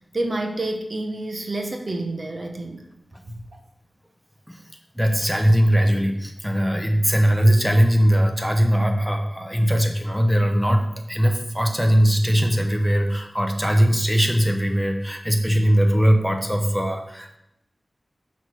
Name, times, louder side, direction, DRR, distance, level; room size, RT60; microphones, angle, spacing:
voice 1, 0.0-2.9 3.3-3.6, right 2 dB, 50° right, 4 dB, 0.7 m, -29 dB
voice 2, 4.9-17.4, equal, ahead, 4 dB, 0.7 m, -20 dB
5.8 x 3.1 x 5.7 m, 0.80 s
wide cardioid pair, 80°, 0 cm